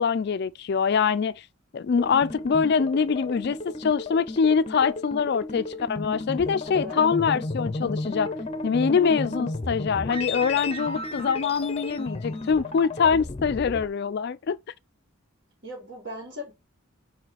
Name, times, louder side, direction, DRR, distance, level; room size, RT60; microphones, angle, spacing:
voice 1, 0.0-1.4 1.7-8.3 8.6-14.6, left 6 dB, 50° left, 0.3 m, -24 dB
sound 1, 2.0-13.9, left 2 dB, 30° left, 0.7 m, -33 dB
voice 2, 6.7-7.0 15.6-16.5, left 1 dB, 55° right, 4.0 m, -38 dB
5.3 x 4.7 x 4.1 m
head